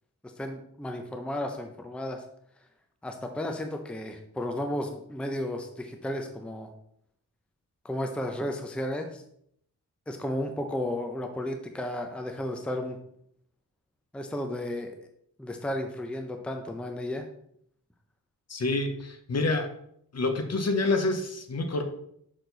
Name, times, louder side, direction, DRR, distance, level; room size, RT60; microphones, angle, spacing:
voice 1, 0.2-2.2 3.0-6.7 7.8-9.2 10.1-13.0 14.1-15.0 15.4-17.3, left 1 dB, 5° left, 4 dB, 0.6 m, -33 dB
voice 2, 18.5-19.7 20.1-21.8, left 2 dB, 50° left, 6 dB, 0.9 m, -27 dB
6.4 x 4.3 x 4.0 m, 0.70 s
wide cardioid pair, 130°, 34 cm